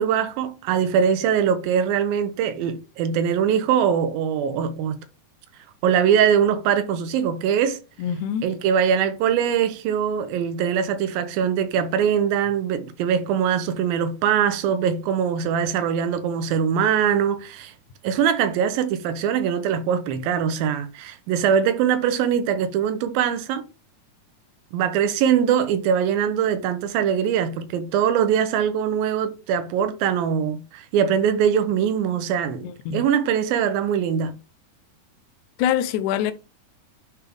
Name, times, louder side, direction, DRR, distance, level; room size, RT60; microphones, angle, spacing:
voice 1, 0.0-5.0 5.8-7.8 8.4-17.7 18.0-23.6 24.7-34.3, right 8 dB, 90° right, 2.5 m, -22 dB
voice 2, 8.0-8.4 32.6-33.0 35.6-36.3, left 9 dB, 90° left, 1.7 m, -24 dB
10.0 x 3.4 x 3.5 m
omnidirectional pair, 4.2 m